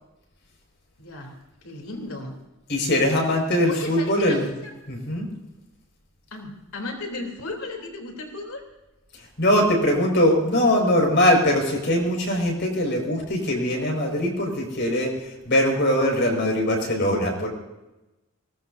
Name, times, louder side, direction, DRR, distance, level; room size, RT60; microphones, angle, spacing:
voice 1, 1.0-1.4 1.6-2.3 3.7-4.4 6.3-8.6, left 2 dB, 85° left, 3 dB, 3.6 m, -35 dB
voice 2, 2.7-4.5 4.9-5.3 9.1-17.5, left 1 dB, 55° left, 0 dB, 5.8 m, -22 dB
23.0 x 20.0 x 2.8 m, 1.0 s
head